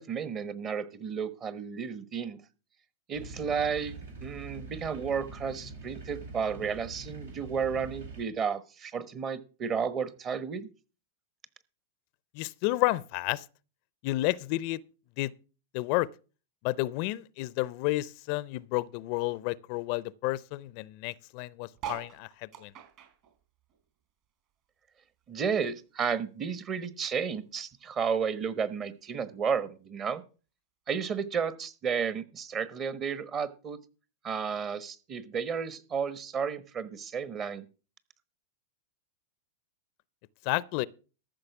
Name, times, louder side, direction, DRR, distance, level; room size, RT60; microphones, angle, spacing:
voice 1, 0.0-2.4 3.1-10.7 25.3-30.2 30.9-33.8 34.2-37.7, right 6 dB, 30° right, 1.1 m, -32 dB
sound 1, 3.1-8.2, right 2 dB, 85° right, 4.4 m, -44 dB
voice 2, 12.3-13.4 14.0-14.8 15.2-15.3 15.7-16.1 16.6-22.7 40.4-40.9, left 19 dB, 50° left, 0.5 m, -31 dB
sound 2, 21.7-24.5 24.9-26.4 26.9-27.0 27.1-27.2 27.4-27.8 28.6-28.7, right 9 dB, 50° right, 4.1 m, -44 dB
14.0 x 6.4 x 5.9 m
hypercardioid pair, 105°, 0 cm